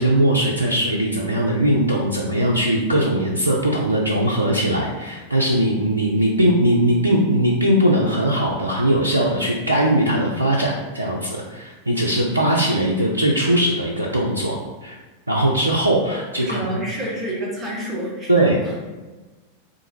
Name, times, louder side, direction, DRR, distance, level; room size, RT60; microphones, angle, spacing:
voice 1, 0.0-15.0 15.3-16.6 18.3-18.6, right 1 dB, 85° right, -2 dB, 0.4 m, -20 dB
voice 2, 16.4-18.8, right 1 dB, 15° right, -5 dB, 1.1 m, -28 dB
3.6 x 2.4 x 2.9 m, 1.2 s
figure-of-eight pair, 90°, 0 cm